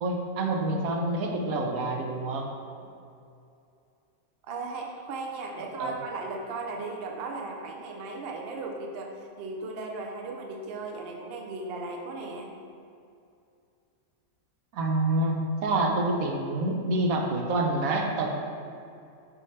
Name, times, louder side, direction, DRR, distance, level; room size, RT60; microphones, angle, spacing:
voice 1, 0.0-2.5 5.8-5.9 14.7-18.3, right 2 dB, 75° right, 1 dB, 1.1 m, -27 dB
voice 2, 4.4-12.5, right 3 dB, 55° right, 2 dB, 0.7 m, -36 dB
5.5 x 3.2 x 5.3 m, 2.5 s
omnidirectional pair, 1.6 m